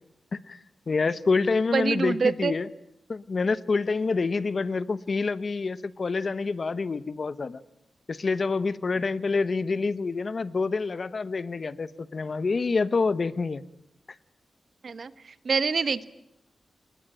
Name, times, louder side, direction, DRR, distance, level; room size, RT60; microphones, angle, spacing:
voice 1, 0.9-2.7 3.1-7.6 8.1-13.6, left 4 dB, 45° left, 15 dB, 1.0 m, -27 dB
voice 2, 1.7-2.5 14.8-16.1, right 5 dB, 55° right, 14 dB, 1.2 m, -26 dB
29.5 x 20.5 x 9.0 m, 0.80 s
wide cardioid pair, 120°, 0 cm